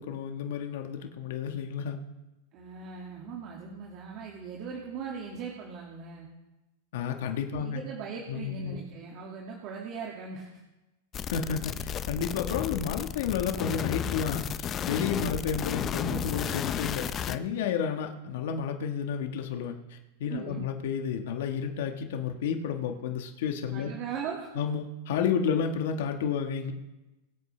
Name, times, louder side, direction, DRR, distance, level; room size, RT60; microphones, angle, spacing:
voice 1, 0.0-2.0 6.9-7.8 8.3-8.8 11.3-23.9 24.6-26.7, left 7 dB, 70° left, 4 dB, 1.3 m, -31 dB
voice 2, 2.5-6.3 7.5-10.5 15.1-15.4 20.3-20.6 23.7-24.5, right 6 dB, 45° right, -2 dB, 2.0 m, -39 dB
sound 1, 11.1-17.4, left 9 dB, 30° left, 0.6 m, -33 dB
22.0 x 8.5 x 3.3 m, 1.0 s
supercardioid pair, 130°, 0 cm